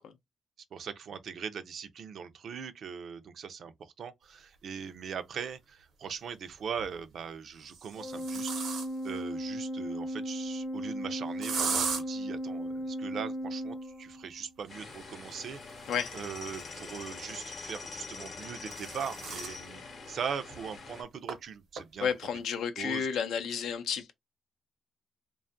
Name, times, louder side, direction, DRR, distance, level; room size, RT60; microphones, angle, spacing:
voice 1, 0.7-8.6 9.0-15.6 16.1-19.8 20.1-22.3 22.8-23.1, right 7 dB, 65° right, 0.4 m, -40 dB
sound 1, 5.0-5.1 6.6-7.0 7.6-9.2 11.4-12.0 14.6-17.2 18.2-19.6 20.1-20.2 20.5-20.6 21.3-21.4 21.8-22.1, right 5 dB, 80° right, 0.8 m, -38 dB
Organ, 8.0-14.5, equal, 10° left, 0.4 m, -36 dB
sound 2, 14.7-21.0, left 4 dB, 60° left, 0.8 m, -44 dB
voice 2, 22.0-24.1, left 7 dB, 85° left, 0.4 m, -31 dB
2.5 x 2.3 x 2.4 m
cardioid pair, 95°, 0 cm